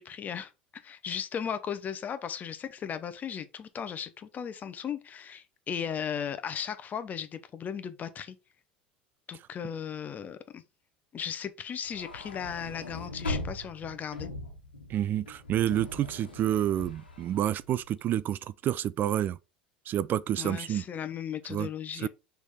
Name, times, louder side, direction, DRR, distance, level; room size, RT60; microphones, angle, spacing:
voice 1, 0.0-8.4 9.3-10.6 11.1-14.3 20.4-22.1, left 8 dB, 35° left, 0.8 m, -36 dB
sound 1, 11.8-18.2, left 2 dB, 90° left, 1.5 m, -40 dB
voice 2, 14.9-19.4 19.9-20.8 21.5-21.7 21.9-22.1, right 11 dB, 40° right, 0.3 m, -29 dB
6.3 x 3.5 x 4.3 m
figure-of-eight pair, 75°, 5 cm